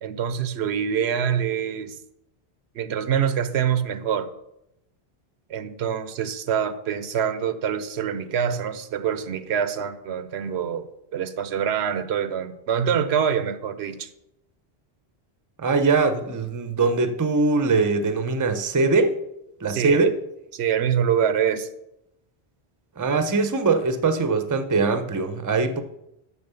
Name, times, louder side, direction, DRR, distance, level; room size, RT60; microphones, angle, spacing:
voice 1, 0.0-2.0 2.7-4.3 5.5-10.9 11.1-14.1 19.7-20.1 20.5-21.7, right 8 dB, 85° right, 0.9 m, -25 dB
voice 2, 15.6-19.2 19.6-20.1 23.0-25.8, right 3 dB, 25° right, 0.5 m, -22 dB
7.0 x 6.3 x 6.8 m
omnidirectional pair, 1.1 m